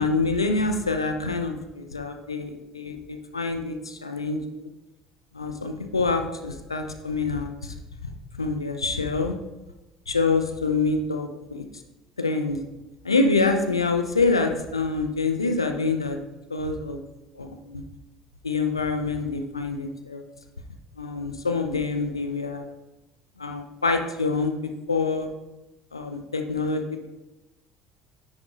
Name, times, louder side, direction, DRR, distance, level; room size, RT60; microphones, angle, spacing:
voice 1, 0.0-4.7 5.3-7.7 8.3-9.4 10.1-11.6 12.2-12.6 13.0-16.2 16.5-17.0 17.4-17.8 18.4-20.2 21.0-22.7 23.4-25.3 25.9-27.1, left 3 dB, 85° left, 6 dB, 0.6 m, -26 dB
9.7 x 8.7 x 2.5 m, 1.0 s
figure-of-eight pair, 60°, 3 cm